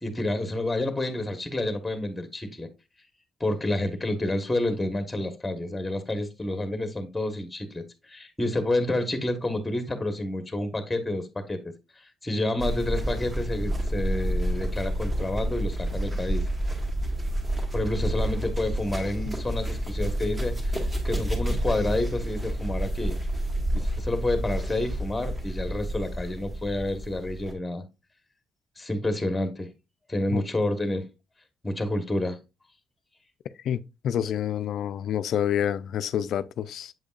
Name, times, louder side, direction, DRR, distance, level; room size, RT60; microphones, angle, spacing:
voice 1, 0.0-2.7 3.4-16.5 17.7-23.2 23.7-27.8 28.8-29.7 30.1-31.1 31.6-32.4, left 1 dB, 10° left, 1.2 m, -29 dB
sound 1, 12.6-27.5, right 1 dB, 25° right, 1.9 m, -29 dB
voice 2, 33.6-36.9, left 9 dB, 70° left, 0.4 m, -28 dB
7.6 x 5.2 x 2.4 m
cardioid pair, 90°, 0 cm